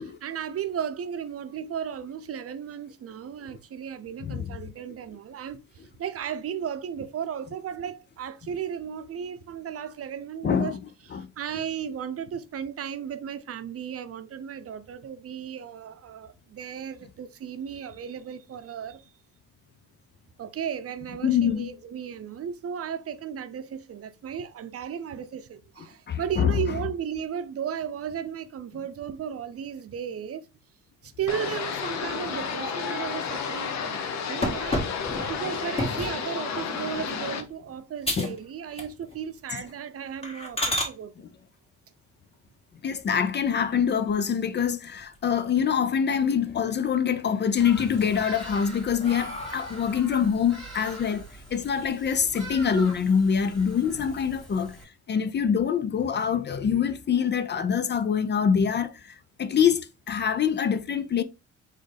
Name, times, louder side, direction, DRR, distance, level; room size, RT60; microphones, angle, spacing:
voice 1, 0.0-10.8 11.0-19.1 20.4-30.5 31.0-34.9 35.3-41.1, right 8 dB, 50° right, 0.6 m, -35 dB
voice 2, 10.4-10.8 11.1-11.3 21.2-21.7 26.1-26.6 38.2-38.3 39.5-39.6 42.8-54.8 55.1-61.2, left 7 dB, 35° left, 0.4 m, -25 dB
sound 1, 31.3-37.4, left 6 dB, 65° left, 0.9 m, -32 dB
sound 2, 34.4-36.2 36.8-37.1 37.5-37.6 38.0-38.4 38.7-39.2 39.6-39.7 40.2-40.9 42.9-43.6 44.1-44.2 44.6-44.7 45.0-45.8 46.1-46.7 47.1-47.7 48.3-50.0, left 1 dB, 20° left, 1.8 m, -32 dB
Bird vocalization bird call bird song, 47.6-54.8, right 1 dB, ahead, 2.0 m, -43 dB
4.3 x 3.7 x 3.3 m
cardioid pair, 90°, 30 cm